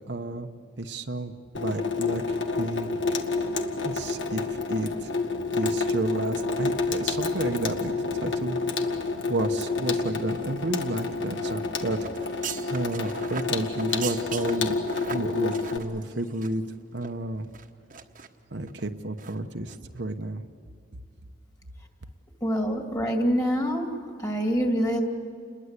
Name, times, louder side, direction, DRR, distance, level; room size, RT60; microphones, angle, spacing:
voice 1, 0.1-0.5 0.8-3.2 3.8-5.1 5.5-8.6 8.9-14.8 15.1-16.6 16.9-17.5 18.5-20.4, right 2 dB, 65° right, 6 dB, 1.1 m, -31 dB
Water tap faucet / Sink (filling or washing), 1.5-15.8, left 3 dB, 75° left, 1.8 m, -29 dB
sound 1, 12.0-16.7 17.0-17.1 17.5-18.3 18.7-18.9 19.2-19.4 19.6-19.8, right 7 dB, 40° right, 1.2 m, -39 dB
voice 2, 22.4-23.9 24.2-25.0, equal, 20° left, 3 dB, 2.6 m, -25 dB
29.5 x 21.5 x 8.3 m, 2.3 s
head